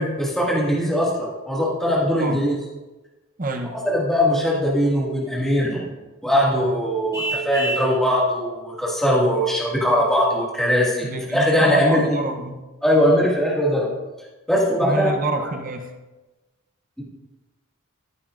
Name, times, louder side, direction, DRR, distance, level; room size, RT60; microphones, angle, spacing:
voice 1, 0.0-2.5 3.8-5.9 6.2-12.1 12.8-13.9 14.5-15.1 15.4-15.5, equal, ahead, -6 dB, 2.0 m, -20 dB
voice 2, 3.4-3.8 11.0-12.6 14.8-15.9, right 2 dB, 40° right, 5 dB, 0.8 m, -27 dB
Vehicle horn car horn honking, 7.1-8.0, right 2 dB, 15° right, 1.5 m, -27 dB
15.0 x 9.0 x 2.6 m, 1.2 s
head